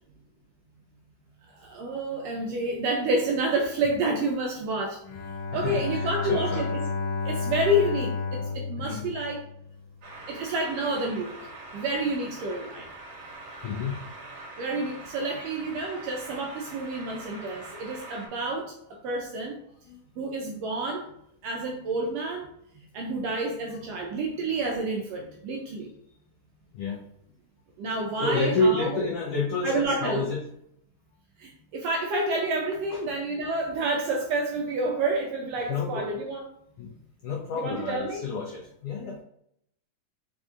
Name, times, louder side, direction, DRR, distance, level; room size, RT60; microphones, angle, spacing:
voice 1, 1.5-5.0 5.5-6.7 7.2-9.4 10.3-11.5 11.7-12.9 14.6-19.6 20.2-21.1 21.4-22.5 22.9-25.9 27.8-29.0 29.6-30.2 31.4-36.5 37.6-38.2, right 2 dB, 80° right, 1 dB, 1.5 m, -29 dB
Bowed string instrument, 5.0-9.8, left 4 dB, 70° left, 1.4 m, -31 dB
voice 2, 5.5-6.7 8.4-9.1 11.8-12.1 13.6-14.0 15.3-15.5 18.6-18.7 19.9-20.0 23.7-23.8 26.7-27.0 27.9-30.5 32.9-33.0 35.7-36.1 36.8-36.9 37.2-39.2, left 3 dB, 85° left, -1 dB, 1.3 m, -30 dB
sound 1, 10.0-18.3, right 2 dB, 60° right, 1.8 m, -44 dB
4.9 x 2.6 x 3.5 m, 0.72 s
omnidirectional pair, 3.4 m